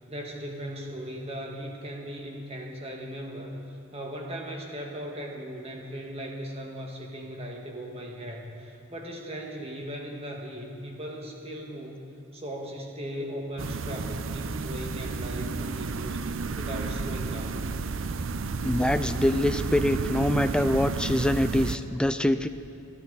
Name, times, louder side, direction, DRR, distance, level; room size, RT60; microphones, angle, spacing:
voice 1, 0.0-12.1 12.3-17.7, equal, 30° right, 0 dB, 1.8 m, -38 dB
sound 1, 13.6-21.8, right 4 dB, 65° right, 0.5 m, -31 dB
voice 2, 18.6-22.5, left 1 dB, 5° left, 10 dB, 0.3 m, -24 dB
28.5 x 11.0 x 4.0 m, 2.9 s
head